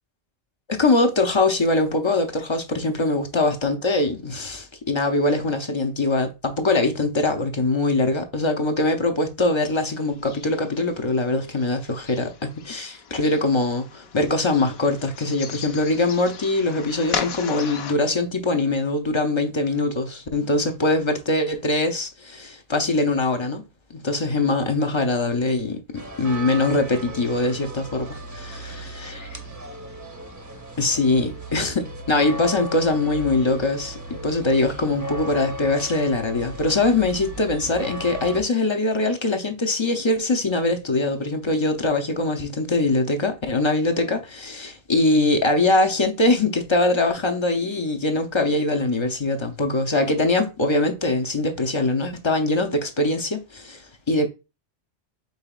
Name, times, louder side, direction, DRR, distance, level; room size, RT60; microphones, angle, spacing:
voice 1, 0.7-23.6 23.9-25.8 26.2-29.2 30.8-54.3, left 2 dB, 35° left, 0.5 m, -22 dB
sound 1, 9.7-17.9, left 7 dB, 70° left, 0.9 m, -37 dB
sound 2, 26.0-38.4, equal, 20° right, 0.7 m, -36 dB
5.5 x 3.8 x 2.3 m
omnidirectional pair, 1.1 m